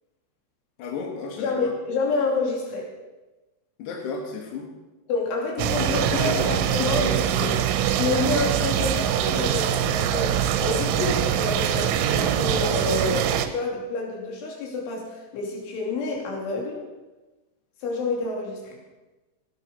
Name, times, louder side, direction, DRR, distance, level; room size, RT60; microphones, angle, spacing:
voice 1, 0.8-1.7 3.8-4.7 5.8-7.6, left 5 dB, 65° left, 0 dB, 3.5 m, -32 dB
voice 2, 1.4-2.9 5.1-7.1 8.0-16.8 17.8-18.8, left 3 dB, 85° left, -1 dB, 5.2 m, -28 dB
sound 1, 5.6-13.5, right 10 dB, 85° right, 3.3 m, -23 dB
17.0 x 10.0 x 5.4 m, 1.1 s
omnidirectional pair, 5.4 m